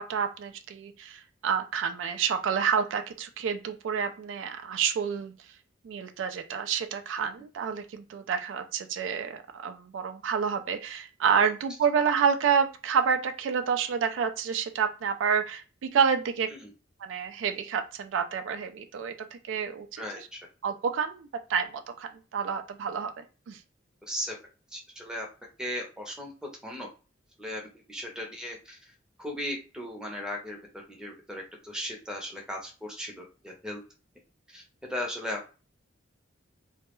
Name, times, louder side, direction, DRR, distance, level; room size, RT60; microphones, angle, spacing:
voice 1, 0.0-5.3 5.8-16.5 17.0-20.3 20.6-23.6, right 7 dB, 80° right, 7 dB, 0.3 m, -29 dB
voice 2, 20.0-20.4 24.1-24.3 24.7-25.3 25.6-26.3 26.6-26.9 27.4-27.6 27.9-28.8 29.2-30.6 31.0-33.8 34.5-34.6 34.9-35.5, left 1 dB, 5° right, 0 dB, 0.5 m, -36 dB
2.2 x 2.0 x 2.9 m, 0.33 s
head